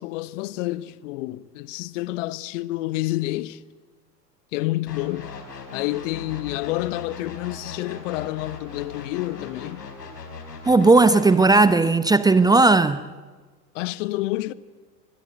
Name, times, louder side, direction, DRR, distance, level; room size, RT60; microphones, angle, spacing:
voice 1, 0.0-3.6 4.5-5.3 5.7-9.9 13.7-14.5, left 18 dB, 50° left, 1.1 m, -29 dB
sound 1, 4.9-11.7, left 4 dB, 75° left, 4.6 m, -39 dB
voice 2, 10.6-13.0, right 3 dB, 10° right, 0.8 m, -16 dB
26.5 x 21.0 x 9.7 m
figure-of-eight pair, 85°, 48 cm